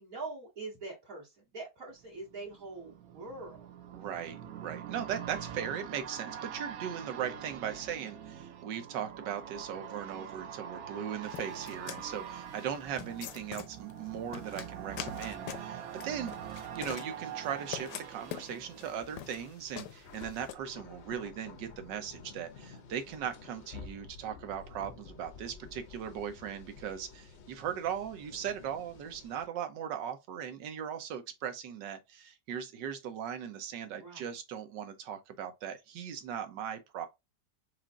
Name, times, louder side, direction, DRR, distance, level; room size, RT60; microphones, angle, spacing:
voice 1, 0.0-3.7 34.0-34.4, right 3 dB, 50° right, 2.2 m, -43 dB
sound 1, 2.0-19.8 20.2-20.3, right 9 dB, 65° right, 0.9 m, -44 dB
voice 2, 3.9-37.1, right 8 dB, 80° right, 1.4 m, -38 dB
sound 2, 11.3-20.5, left 11 dB, 80° left, 1.2 m, -44 dB
sound 3, 17.0-29.5, left 5 dB, 60° left, 0.7 m, -52 dB
4.9 x 2.5 x 3.6 m
omnidirectional pair, 1.9 m